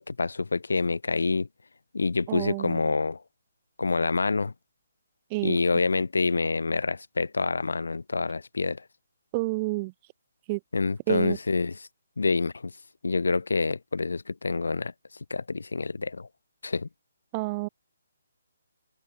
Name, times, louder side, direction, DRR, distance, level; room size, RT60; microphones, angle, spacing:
voice 1, 0.0-1.5 1.9-3.2 3.8-4.5 5.4-8.8 10.7-11.9 12.2-12.7 13.0-14.9 15.3-16.3 16.6-16.9, left 4 dB, 80° left, 4.8 m, -27 dB
voice 2, 2.3-2.8 5.3-5.6 9.3-9.9 10.5-10.6 11.1-11.4 17.3-17.7, right 24 dB, 25° right, 2.8 m, -29 dB
hypercardioid pair, 155°, 0 cm